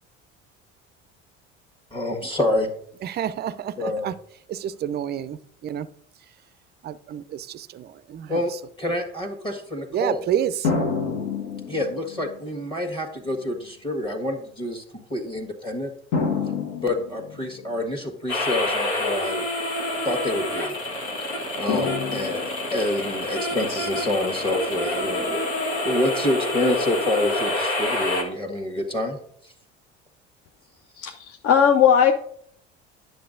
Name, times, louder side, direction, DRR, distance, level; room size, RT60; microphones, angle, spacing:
voice 1, 1.9-2.7 3.8-4.1 8.3-8.5 8.8-10.2 11.7-14.8 15.1-15.9 16.8-19.5 20.0-20.8 21.5-22.4 22.7-25.4 25.8-29.2 29.4-29.5, left 1 dB, 15° left, 3 dB, 1.4 m, -27 dB
voice 2, 3.0-4.1 4.5-5.9 6.8-8.6 9.9-10.7, right 10 dB, 30° right, 16 dB, 0.4 m, -29 dB
sound 1, 10.6-12.4 13.3-13.4 16.1-17.8 21.7-23.0, left 5 dB, 60° left, 1.5 m, -28 dB
sound 2, 18.3-28.2, left 1 dB, 80° left, 1.4 m, -27 dB
voice 3, 31.0-32.1, left 8 dB, 40° left, 7 dB, 0.6 m, -18 dB
10.0 x 6.5 x 2.5 m, 0.67 s
hypercardioid pair, 65°, 34 cm